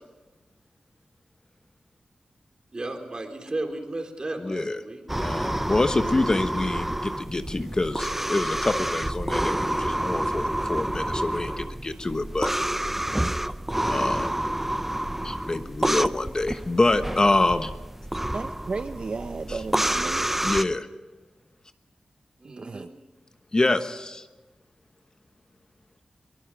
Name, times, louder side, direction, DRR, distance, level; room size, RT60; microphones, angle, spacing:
voice 1, 2.7-5.0 22.4-22.9, right 2 dB, 40° right, 3.7 m, -34 dB
voice 2, 4.4-4.8 5.2-12.5 13.9-14.3 15.2-17.7 19.5-19.6 20.4-20.9 23.5-24.3, left 2 dB, 30° left, 1.1 m, -26 dB
sound 1, 5.1-20.6, right 1 dB, 10° right, 0.7 m, -28 dB
voice 3, 18.3-20.3 22.4-22.9, right 4 dB, 55° right, 0.7 m, -34 dB
23.0 x 20.5 x 6.4 m
wide cardioid pair, 85°, 2 cm